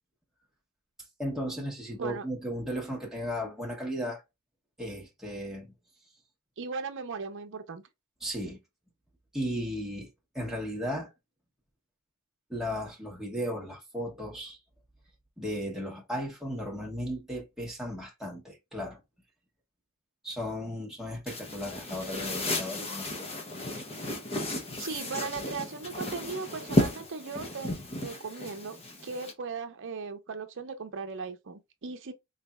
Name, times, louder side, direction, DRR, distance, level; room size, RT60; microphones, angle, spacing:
voice 1, 1.2-4.2 4.8-5.7 8.2-8.6 9.3-10.1 10.3-11.1 12.5-14.6 15.4-19.0 20.2-23.1, equal, ahead, 0.9 m, -35 dB
voice 2, 6.6-7.8 24.8-28.8 29.0-32.1, right 5 dB, 60° right, 0.7 m, -38 dB
sound 1, 21.3-29.3, left 1 dB, 30° left, 0.8 m, -33 dB
4.0 x 3.3 x 2.3 m
head